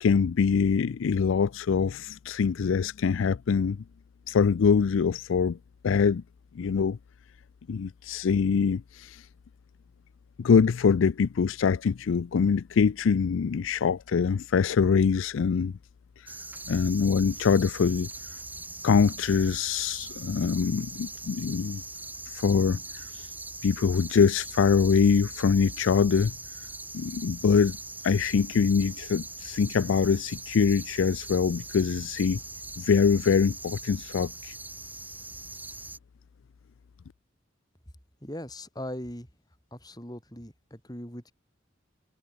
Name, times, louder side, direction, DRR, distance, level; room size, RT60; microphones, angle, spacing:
voice 1, 0.0-3.8 4.3-5.6 5.8-6.2 6.6-7.0 7.7-9.2 10.4-15.7 16.7-18.1 18.8-21.8 22.3-22.8 23.1-23.3 23.6-26.3 26.9-27.8 28.0-32.4 32.8-34.5, left 6 dB, 75° left, 0.4 m, -24 dB
sound 1, 16.3-36.0, right 2 dB, 10° right, 5.3 m, -41 dB
voice 2, 38.2-39.3 39.7-41.3, left 1 dB, 20° left, 7.3 m, -39 dB
head